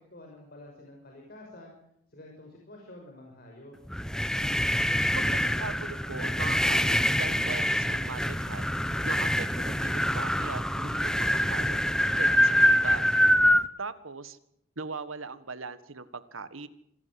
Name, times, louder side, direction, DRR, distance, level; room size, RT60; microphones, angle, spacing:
voice 1, 0.1-1.7 2.1-3.8, left 1 dB, 50° left, 0 dB, 5.9 m, -48 dB
sound 1, 3.9-13.7, equal, 5° left, 1.0 m, -25 dB
voice 2, 5.1-8.7 9.0-11.8 12.2-13.1 13.8-14.4 14.8-16.7, right 4 dB, 80° right, 13 dB, 1.7 m, -39 dB
27.5 x 17.0 x 7.8 m, 0.73 s
head